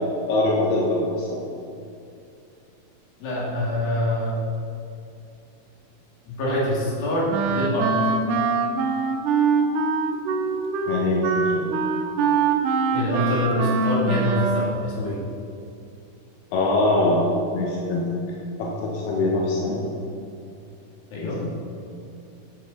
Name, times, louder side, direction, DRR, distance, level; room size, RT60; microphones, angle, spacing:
voice 1, 0.3-1.4 10.9-11.7 16.5-17.2 17.5-18.1 18.6-19.8 21.2-21.5, left 2 dB, 85° left, -3 dB, 3.3 m, -23 dB
voice 2, 3.2-4.4 6.3-7.9 12.9-15.2 21.1-21.4, left 1 dB, 65° left, -5 dB, 4.3 m, -25 dB
Wind instrument woodwind instrument, 7.3-14.8, right 4 dB, 80° right, 1.8 m, -23 dB
13.0 x 7.9 x 4.4 m, 2.5 s
omnidirectional pair, 4.6 m